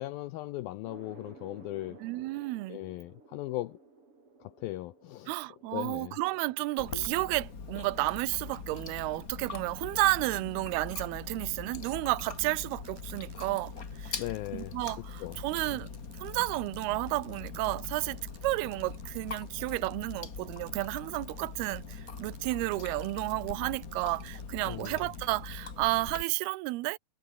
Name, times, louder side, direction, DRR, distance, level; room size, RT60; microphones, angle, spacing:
voice 1, 0.0-2.0 2.7-3.8 4.4-5.4 5.7-6.2 14.2-14.8 15.2-15.4 15.7-15.8 24.6-25.0, left 17 dB, 85° left, 2.2 m, -38 dB
sound 1, 0.9-10.1, right 3 dB, 30° right, 5.9 m, -57 dB
voice 2, 2.0-2.8 5.3-13.7 14.0-14.2 14.5-15.9 16.2-27.0, right 20 dB, 75° right, 2.6 m, -32 dB
Chewing mastication, 6.8-26.2, left 5 dB, 35° left, 1.4 m, -42 dB
sound 2, 12.6-25.6, right 5 dB, 55° right, 6.2 m, -58 dB
omnidirectional pair, 4.9 m